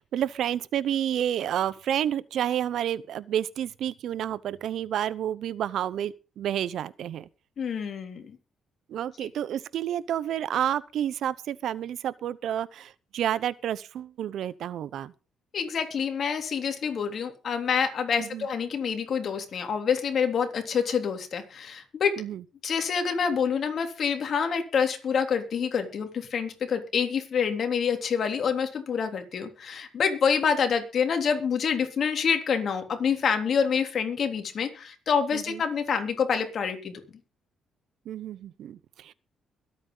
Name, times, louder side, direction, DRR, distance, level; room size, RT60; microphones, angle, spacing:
voice 1, 0.0-7.3 8.9-15.1 18.2-18.5 22.2-22.4 35.3-35.6 38.1-39.1, right 10 dB, 75° right, 0.7 m, -30 dB
voice 2, 7.6-8.4 15.5-22.1 22.6-37.0, left 6 dB, 55° left, 3.3 m, -27 dB
22.5 x 8.8 x 4.0 m
cardioid pair, 90°, 0 cm